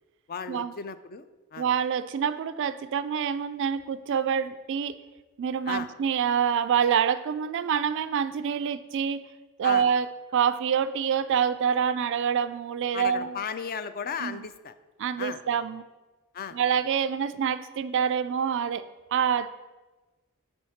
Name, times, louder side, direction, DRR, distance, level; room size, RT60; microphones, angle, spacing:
voice 1, 0.3-1.3 1.5-1.7 5.7-5.9 9.6-9.9 12.9-14.7 15.2-15.4 16.3-16.6, left 6 dB, 45° left, 12 dB, 0.4 m, -35 dB
voice 2, 1.6-5.0 5.4-9.2 9.6-10.1 10.3-13.4 14.2-14.5 15.0-15.8 16.5-18.9 19.1-19.5, right 7 dB, 55° right, 13 dB, 0.3 m, -26 dB
9.9 x 3.5 x 6.3 m, 1.2 s
head